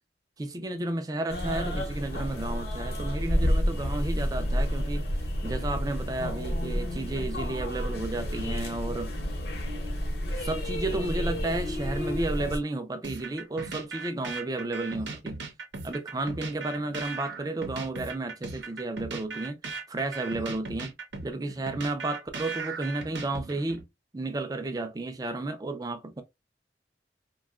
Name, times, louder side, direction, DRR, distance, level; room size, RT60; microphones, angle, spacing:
voice 1, 0.4-5.0 5.4-9.1 10.4-15.4 15.8-19.6 19.9-20.9 21.2-23.8 24.1-26.2, right 2 dB, 20° right, 0.4 m, -32 dB
sound 1, 1.3-12.6, equal, 60° left, 0.8 m, -30 dB
sound 2, 13.0-23.8, right 4 dB, 85° right, 0.7 m, -38 dB
2.8 x 2.2 x 2.3 m
head